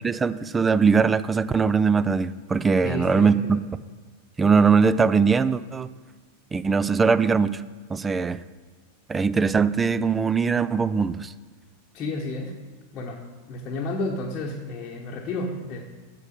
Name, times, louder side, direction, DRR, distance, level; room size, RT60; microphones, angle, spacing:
voice 1, 0.0-3.6 4.4-5.9 6.5-7.6 7.9-8.4 9.1-11.3, right 5 dB, 15° right, 15 dB, 0.3 m, -21 dB
voice 2, 2.8-3.6 11.9-12.6 12.9-15.8, left 2 dB, 30° left, -1 dB, 1.0 m, -31 dB
8.2 x 5.4 x 6.9 m, 1.5 s
figure-of-eight pair, 90°, 0 cm